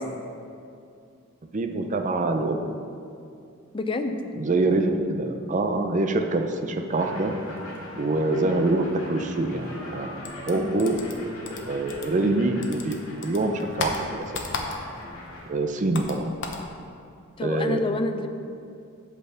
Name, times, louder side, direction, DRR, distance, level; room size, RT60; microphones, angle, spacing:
voice 1, 1.5-2.6 4.3-7.3 8.0-10.2 10.5-11.0 11.4-13.0 13.2-14.2 15.5-16.2 17.4-17.8, right 2 dB, 35° right, 5 dB, 0.5 m, -25 dB
voice 2, 3.7-4.3 17.4-18.3, left 2 dB, 25° left, 7 dB, 0.4 m, -28 dB
sound 1, 6.9-15.5, left 1 dB, 90° left, 2.0 m, -41 dB
sound 2, 10.2-12.4 12.6-15.1 15.4-16.7, left 3 dB, 60° left, 0.9 m, -34 dB
8.3 x 4.4 x 6.8 m, 2.5 s
head